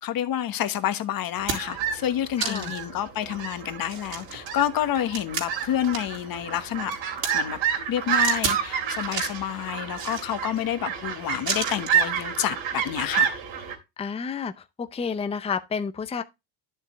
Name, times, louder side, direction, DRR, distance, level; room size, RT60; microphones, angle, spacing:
voice 1, 0.0-7.0 7.3-7.6 7.9-13.3, left 11 dB, 45° left, 1.2 m, -28 dB
sound 1, 0.7-0.8 1.2-1.9 2.4-2.9 3.3-3.4 3.8-6.2 6.5-7.3 8.2-8.6 9.0-9.4 9.9-10.6 11.5-12.0 13.1-13.2, right 6 dB, 45° right, 3.8 m, -32 dB
sound 2, 1.4-13.8, right 8 dB, 65° right, 3.3 m, -29 dB
voice 2, 2.4-2.7 14.0-14.5 14.8-16.2, left 6 dB, 15° left, 0.6 m, -30 dB
10.5 x 6.7 x 3.1 m
cardioid pair, 135°, 48 cm